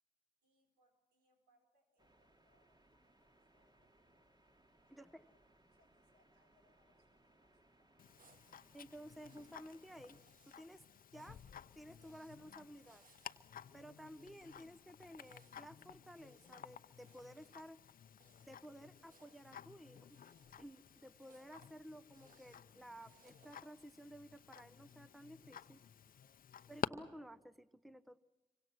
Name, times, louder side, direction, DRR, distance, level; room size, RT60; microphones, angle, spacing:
voice 1, 0.4-4.3 4.9-8.3, equal, 85° right, 2 dB, 4.7 m, -79 dB
sound 1, 2.0-10.2, right 1 dB, 25° right, 2.4 m, -71 dB
voice 2, 4.9-5.2 8.7-10.2 10.5-10.9 11.1-11.4 11.7-13.0 13.7-17.8 18.4-20.2 20.6-25.8 26.7-28.2, equal, ahead, 12 dB, 0.9 m, -54 dB
Tick-tock, 8.0-26.9, left 9 dB, 60° left, 0.8 m, -52 dB
sound 2, 8.2-23.6, right 4 dB, 60° right, 1.8 m, -72 dB
26.0 x 24.5 x 6.1 m, 1.1 s
supercardioid pair, 45°, 16 cm